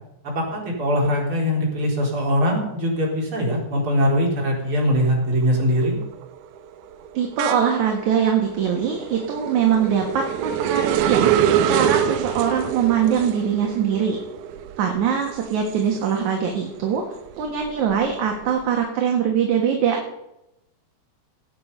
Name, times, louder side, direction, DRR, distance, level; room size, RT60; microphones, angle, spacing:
voice 1, 0.2-6.0, equal, 35° right, -3 dB, 4.8 m, -21 dB
sound 1, 4.5-4.9 5.3-16.5 16.9-18.6, right 10 dB, 75° right, 1.8 m, -26 dB
voice 2, 7.1-14.2 14.8-17.1 17.4-20.0, right 7 dB, 60° right, 2 dB, 2.7 m, -22 dB
18.0 x 8.9 x 5.5 m, 0.88 s
omnidirectional pair, 4.1 m